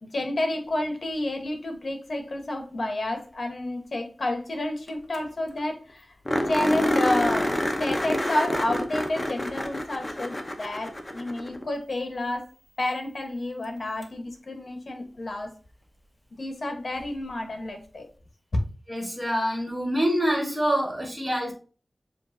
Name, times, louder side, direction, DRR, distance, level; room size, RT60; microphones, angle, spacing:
voice 1, 0.0-6.2 6.5-12.5 12.8-15.5 16.4-18.1 18.5-18.6, left 1 dB, 60° left, 1.1 m, -30 dB
sound 1, 4.9-5.0 5.1-5.2 5.6-5.7 6.3-11.7 14.0-14.1 17.0-17.1, left 1 dB, 25° left, 0.7 m, -27 dB
voice 2, 18.9-21.5, equal, 10° right, 1.6 m, -26 dB
7.4 x 2.5 x 2.6 m
wide cardioid pair, 80°, 0 cm